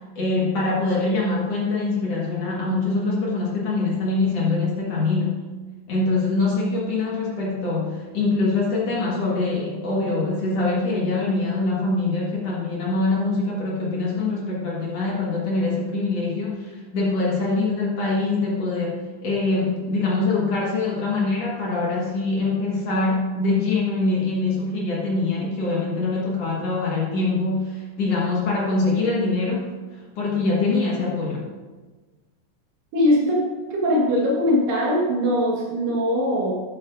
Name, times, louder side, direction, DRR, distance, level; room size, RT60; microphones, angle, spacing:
voice 1, 0.2-5.4 5.9-29.7 29.9-31.5, left 3 dB, 50° left, -4 dB, 2.3 m, -24 dB
voice 2, 32.9-33.4 33.7-36.5, left 1 dB, 70° right, -3 dB, 3.1 m, -21 dB
12.5 x 9.4 x 2.6 m, 1.3 s
omnidirectional pair, 4.3 m